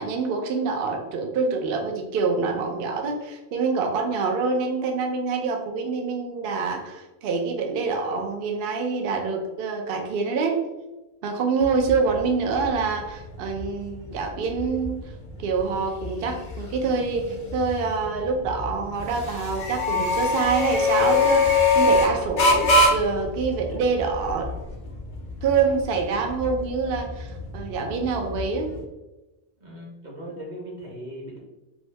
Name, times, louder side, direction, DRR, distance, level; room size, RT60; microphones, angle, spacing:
voice 1, 0.0-10.7 11.2-15.0 15.4-24.5 25.4-28.7, right 4 dB, 65° right, 3 dB, 0.7 m, -26 dB
sound 1, 11.6-28.8, left 3 dB, 55° left, 0.8 m, -25 dB
voice 2, 29.6-31.4, equal, 45° right, -3 dB, 1.0 m, -38 dB
2.8 x 2.6 x 3.1 m, 1.0 s
omnidirectional pair, 1.1 m